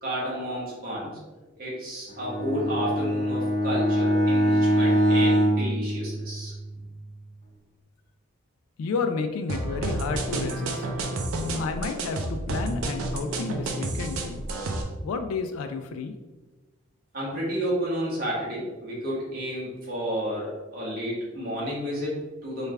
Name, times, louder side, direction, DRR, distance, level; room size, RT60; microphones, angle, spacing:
voice 1, 0.0-1.2 1.6-6.5 17.1-22.7, equal, 45° right, -6 dB, 1.1 m, -31 dB
Bowed string instrument, 2.1-6.7, equal, 30° left, 0.8 m, -23 dB
voice 2, 8.8-10.9 11.6-14.5 15.0-16.1, left 4 dB, 85° left, 7 dB, 0.3 m, -31 dB
sound 1, 9.5-14.8, right 2 dB, 85° right, 0.5 m, -30 dB
3.3 x 2.4 x 3.2 m, 1.2 s
head